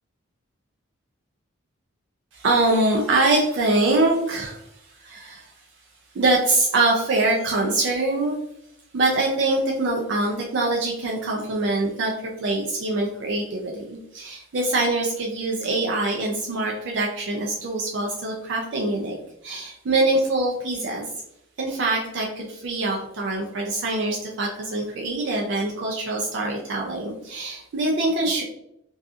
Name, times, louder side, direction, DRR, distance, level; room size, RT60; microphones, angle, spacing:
voice 1, 2.3-5.5 6.1-8.4 8.9-19.2 19.4-21.1 21.6-28.4, right 2 dB, 55° right, 0 dB, 0.4 m, -24 dB
2.7 x 2.3 x 2.4 m, 0.78 s
head